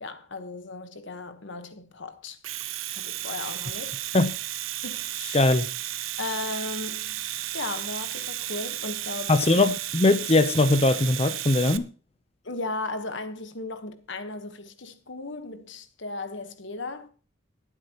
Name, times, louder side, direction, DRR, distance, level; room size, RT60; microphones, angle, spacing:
voice 1, 0.0-2.4 2.9-4.0 4.8-5.4 6.2-7.2 7.5-9.3 12.4-17.1, left 3 dB, 65° left, 1.2 m, -36 dB
Domestic sounds home sounds, 2.3-11.8, right 13 dB, 80° right, 0.7 m, -33 dB
voice 2, 5.3-5.7 9.3-11.9, left 2 dB, 30° left, 0.7 m, -21 dB
19.5 x 8.3 x 3.0 m
head